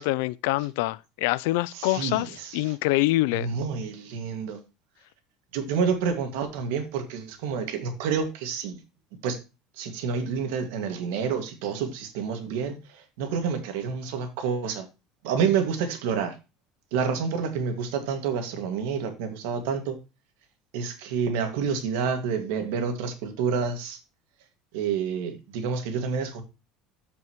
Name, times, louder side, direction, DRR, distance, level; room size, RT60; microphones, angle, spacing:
voice 1, 0.0-3.5, left 19 dB, 85° left, 0.4 m, -25 dB
voice 2, 1.7-2.7 3.3-4.6 5.5-8.8 9.2-9.4 9.8-14.9 15.2-16.4 16.9-20.0 20.7-24.0 24.7-26.4, right 6 dB, 85° right, 2.1 m, -28 dB
13.5 x 5.5 x 3.1 m
cardioid pair, 170°, 0 cm